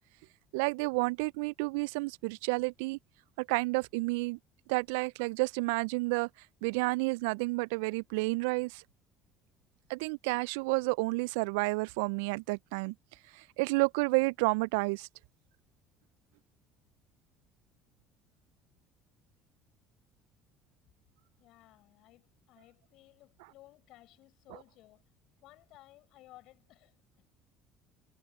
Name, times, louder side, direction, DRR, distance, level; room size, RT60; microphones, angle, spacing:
voice 1, 0.5-3.0 3.4-4.4 4.7-6.3 6.6-8.8 9.9-12.9 13.3-15.1, right 27 dB, 70° right, 0.6 m, -30 dB
voice 2, 21.4-25.0 25.4-27.0, left 17 dB, 60° left, 6.1 m, -58 dB
hypercardioid pair, 60°, 0 cm